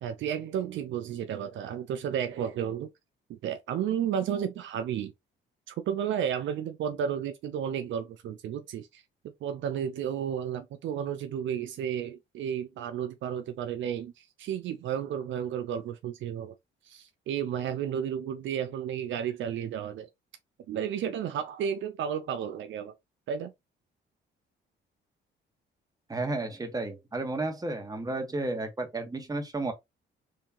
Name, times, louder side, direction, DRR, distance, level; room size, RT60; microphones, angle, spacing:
voice 1, 0.0-2.9 3.3-5.1 5.7-9.0 9.4-16.5 16.8-20.1 20.7-22.9 23.3-23.5, right 8 dB, 75° right, 0.6 m, -32 dB
voice 2, 26.1-29.7, right 2 dB, 20° right, 1.4 m, -32 dB
3.7 x 2.8 x 2.8 m
cardioid pair, 90°, 20 cm